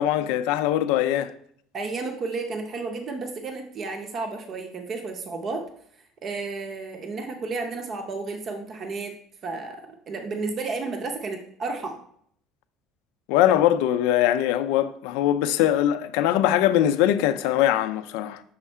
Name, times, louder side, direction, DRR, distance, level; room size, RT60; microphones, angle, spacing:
voice 1, 0.0-1.3 13.3-18.4, left 12 dB, 80° left, 0.4 m, -22 dB
voice 2, 1.7-5.7 6.2-9.1 9.4-12.0, right 3 dB, 30° right, 0.6 m, -32 dB
6.3 x 3.6 x 4.3 m
cardioid pair, 170°, 0 cm